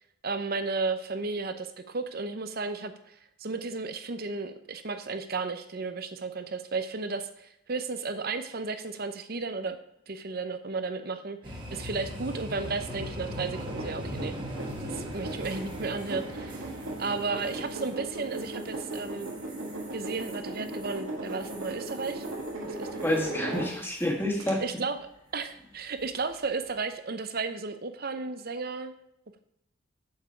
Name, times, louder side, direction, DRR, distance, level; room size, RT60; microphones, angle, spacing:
voice 1, 0.2-9.8 10.1-14.3 14.8-16.7 17.0-19.3 19.9-22.2 22.6-23.1 24.6-25.0 25.3-28.9, right 4 dB, 50° right, 9 dB, 0.7 m, -34 dB
sound 1, 11.4-23.3 23.6-24.1 26.0-26.3, equal, 25° right, 1.6 m, -41 dB
sound 2, 13.5-24.0 24.4-24.5, right 2 dB, 90° right, 2.2 m, -38 dB
voice 2, 23.0-24.6, left 1 dB, 10° left, -1 dB, 1.8 m, -28 dB
7.3 x 7.1 x 4.9 m, 0.79 s
head